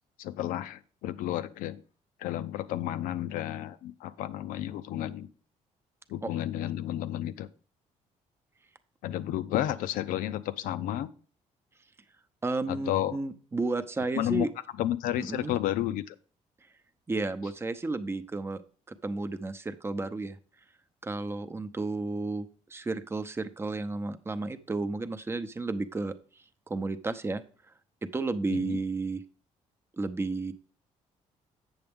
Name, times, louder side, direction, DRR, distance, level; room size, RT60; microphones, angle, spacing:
voice 1, 0.2-1.8 2.2-5.3 6.1-7.5 9.0-11.1 12.7-13.2 14.1-14.5 14.8-16.1 28.5-28.8, left 12 dB, 85° left, 13 dB, 0.6 m, -31 dB
voice 2, 12.4-14.5 15.2-15.6 17.1-18.6 18.9-20.4 21.0-26.2 26.7-27.4 28.0-29.2 30.0-30.5, right 3 dB, 20° right, 10 dB, 0.7 m, -32 dB
7.9 x 6.9 x 3.6 m, 0.40 s
cardioid pair, 100°, 14 cm